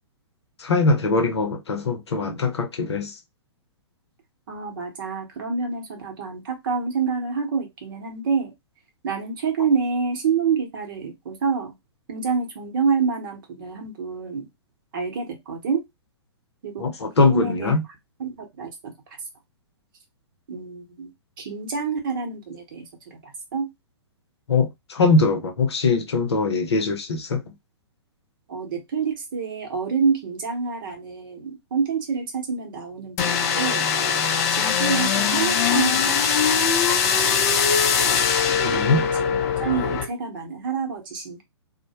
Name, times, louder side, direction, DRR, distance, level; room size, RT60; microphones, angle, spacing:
voice 1, 0.6-3.1 16.8-17.8 24.5-27.4 38.6-39.0, left 3 dB, 70° left, 0.7 m, -22 dB
voice 2, 4.5-8.5 9.0-11.7 12.1-14.5 14.9-15.8 16.6-16.8 17.2-17.7 18.2-18.9 20.5-21.1 21.4-22.9 23.1-23.7 28.5-33.9 34.5-37.3 38.5-41.4, right 5 dB, 50° right, 0.9 m, -27 dB
sound 1, 33.2-40.1, left 6 dB, 35° left, 0.5 m, -21 dB
2.1 x 2.0 x 2.8 m
figure-of-eight pair, 115°, 15 cm